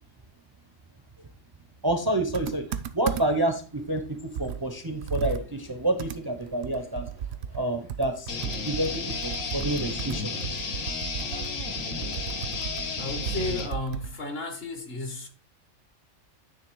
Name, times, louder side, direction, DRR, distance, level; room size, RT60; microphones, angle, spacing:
voice 1, 1.8-7.1 7.5-8.4 8.6-10.6 11.3-11.5, right 1 dB, 25° right, 0.6 m, -29 dB
Computer keyboard, 2.3-3.5 3.9-4.0 4.3-14.2, right 8 dB, 65° right, 0.7 m, -35 dB
sound 1, 8.3-13.7, left 4 dB, 75° left, 1.5 m, -33 dB
voice 2, 13.0-15.3, left 2 dB, 50° left, 1.3 m, -33 dB
9.4 x 3.4 x 4.6 m
omnidirectional pair, 1.4 m